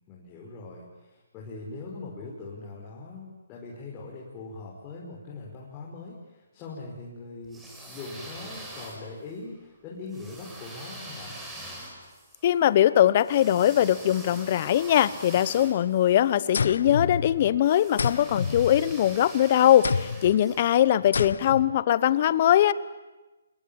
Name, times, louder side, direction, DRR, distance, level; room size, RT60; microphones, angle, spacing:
voice 1, 0.1-7.6 7.9-11.4 21.0-21.5, left 3 dB, 20° left, -4 dB, 5.2 m, -41 dB
Blowing Balloon, 7.4-9.3 10.1-16.5 17.6-20.6, right 1 dB, 10° right, 5.5 m, -44 dB
voice 2, 12.4-22.7, left 11 dB, 40° left, 17 dB, 1.0 m, -21 dB
sound 1, 16.5-17.6 18.0-19.3 19.8-20.4 21.1-21.8, left 5 dB, 70° left, 0.9 m, -29 dB
27.0 x 22.0 x 8.9 m, 1.1 s
hypercardioid pair, 155°, 0 cm